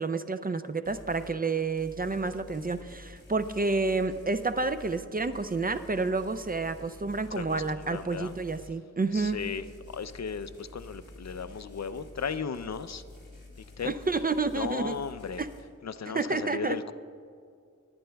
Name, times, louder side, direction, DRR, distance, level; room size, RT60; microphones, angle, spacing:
voice 1, 0.0-9.4 13.8-15.0 15.4-15.5 16.1-16.8, right 3 dB, 30° right, 10 dB, 0.4 m, -29 dB
sound 1, 0.8-1.4 1.8-8.8 9.2-15.6, left 2 dB, 35° left, 2.9 m, -49 dB
voice 2, 7.4-8.3 9.1-13.0 13.8-13.9 14.6-15.4 15.8-16.9, left 6 dB, 60° left, 12 dB, 0.5 m, -36 dB
21.5 x 9.5 x 2.3 m, 2.3 s
wide cardioid pair, 70°, 31 cm